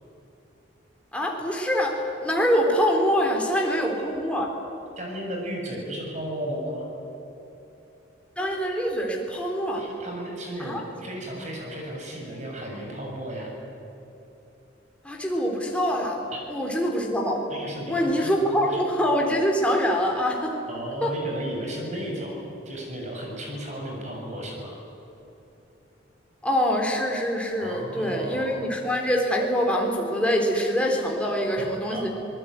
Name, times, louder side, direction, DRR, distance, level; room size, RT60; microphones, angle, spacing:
voice 1, 1.1-4.5 8.4-9.9 10.6-10.8 15.0-16.2 16.5-17.5 17.9-20.6 21.0-21.2 26.4-32.1, equal, 5° left, 0 dB, 3.7 m, -24 dB
voice 2, 5.0-6.9 9.8-13.7 16.3-16.4 17.5-18.8 20.7-24.8 27.6-28.7 31.6-32.1, right 1 dB, 40° right, 0 dB, 7.1 m, -34 dB
27.0 x 19.5 x 9.6 m, 2.9 s
head